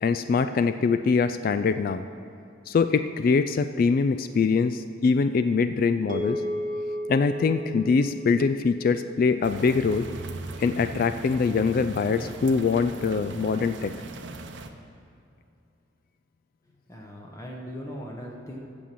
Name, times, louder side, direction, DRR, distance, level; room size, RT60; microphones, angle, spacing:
voice 1, 0.0-2.0 2.7-6.4 7.1-10.1 10.6-13.9, left 5 dB, 50° left, 11 dB, 0.3 m, -23 dB
sound 1, 6.1-10.6, equal, 45° right, 1.1 m, -35 dB
sound 2, 9.4-14.7, right 2 dB, 70° right, 0.7 m, -39 dB
voice 2, 16.9-18.6, equal, 15° left, -1 dB, 0.9 m, -39 dB
8.6 x 6.9 x 7.5 m, 2.6 s
head